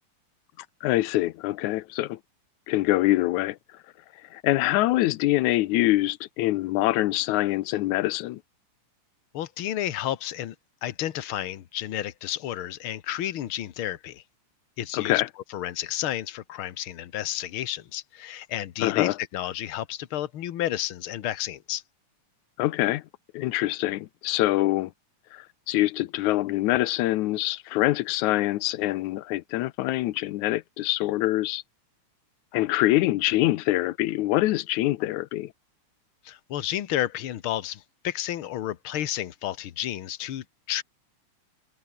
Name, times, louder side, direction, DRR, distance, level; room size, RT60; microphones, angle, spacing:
voice 1, 0.8-2.2 2.7-3.6 4.3-8.4 14.9-15.3 18.8-19.2 22.6-23.0 23.3-24.9 25.3-31.6 32.5-35.5, left 17 dB, 80° left, 2.1 m, -24 dB
voice 2, 9.3-10.6 10.8-14.2 14.8-15.2 15.5-21.8 36.3-40.8, left 12 dB, 55° left, 1.7 m, -31 dB
omnidirectional pair, 3.4 m